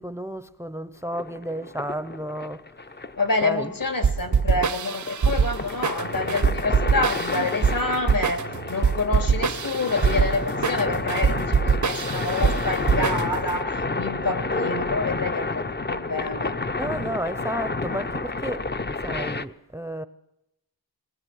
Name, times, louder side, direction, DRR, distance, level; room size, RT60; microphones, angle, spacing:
voice 1, 0.0-2.6 3.4-3.7 16.8-20.1, equal, 5° right, 0.8 m, -32 dB
sound 1, 1.1-19.5, left 3 dB, 25° left, 0.9 m, -30 dB
voice 2, 3.2-8.4 8.7-16.6, left 3 dB, 55° left, 3.1 m, -27 dB
sound 2, 4.0-13.6, right 6 dB, 50° right, 0.8 m, -24 dB
21.5 x 20.0 x 9.4 m
wide cardioid pair, 95°, 39 cm